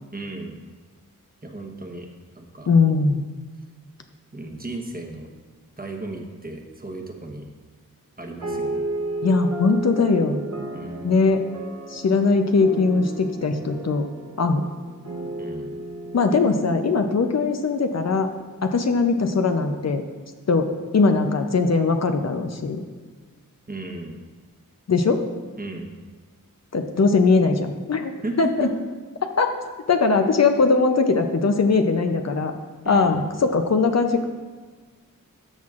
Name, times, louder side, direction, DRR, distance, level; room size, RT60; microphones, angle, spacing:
voice 1, 0.1-0.6 1.4-2.1 2.4-2.7 4.3-5.3 5.8-7.5 8.2-8.9 10.7-11.2 15.4-15.7 23.7-24.2 25.6-25.9 28.2-28.7 32.8-33.2, right 2 dB, 25° right, 2 dB, 1.0 m, -34 dB
voice 2, 2.7-3.3 9.2-10.4 11.0-11.4 11.9-14.1 14.4-14.6 16.1-18.3 18.6-20.0 20.5-20.7 20.9-22.8 24.9-25.2 26.7-28.1 28.4-28.7 29.4-29.5 29.9-32.5 32.9-34.2, left 4 dB, 50° left, 6 dB, 0.6 m, -20 dB
sound 1, 8.4-18.2, right 2 dB, 55° right, 0.9 m, -34 dB
13.5 x 5.8 x 2.5 m, 1.5 s
wide cardioid pair, 75°, 34 cm